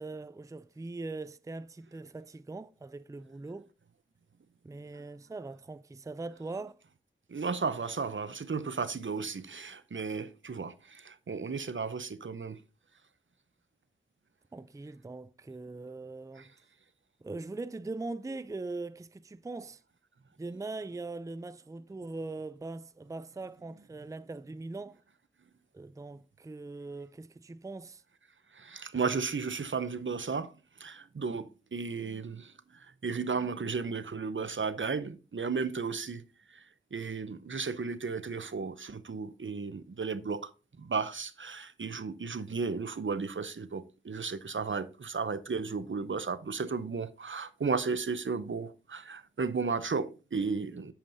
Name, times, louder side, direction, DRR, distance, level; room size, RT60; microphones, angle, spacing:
voice 1, 0.0-3.7 4.6-6.8 14.5-16.5 17.2-19.8 20.4-25.0 25.7-28.0, right 3 dB, 15° right, 0.4 m, -41 dB
voice 2, 7.3-12.6 28.5-30.5 30.8-32.5 33.0-36.2 36.9-40.5 40.8-50.9, right 5 dB, 75° right, 0.6 m, -34 dB
8.6 x 7.2 x 2.6 m
wide cardioid pair, 55°, 20 cm